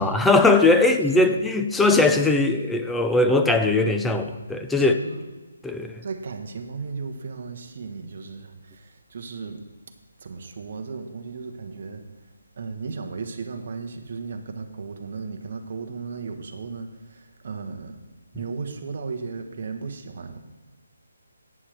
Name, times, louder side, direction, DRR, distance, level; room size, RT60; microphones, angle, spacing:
voice 1, 0.0-5.0 5.6-6.0, left 2 dB, 5° left, 6 dB, 0.4 m, -20 dB
voice 2, 0.8-1.4 4.8-5.3 6.0-9.7 10.2-12.3 12.6-18.0 18.3-20.4, right 4 dB, 45° right, 5 dB, 1.1 m, -35 dB
11.0 x 9.2 x 3.4 m, 1.3 s
hypercardioid pair, 165°, 0 cm